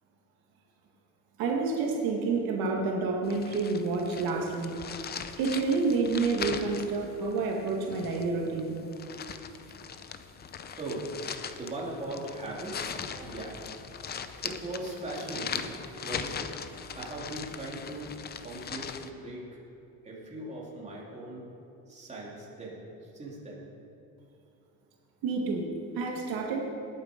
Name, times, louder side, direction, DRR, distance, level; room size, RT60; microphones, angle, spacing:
voice 1, 1.4-4.7 5.4-8.8 25.2-25.7 26.0-26.7, right 4 dB, 70° right, 0 dB, 1.9 m, -29 dB
sound 1, 3.2-19.1, left 7 dB, 25° left, 0.6 m, -40 dB
voice 2, 10.8-11.1 11.5-13.6 14.4-15.7 16.0-16.5 16.9-18.1 18.4-19.6 20.0-21.4 21.9-23.6, right 2 dB, 20° right, -4 dB, 2.9 m, -39 dB
19.5 x 8.5 x 5.1 m, 2.8 s
cardioid pair, 145°, 38 cm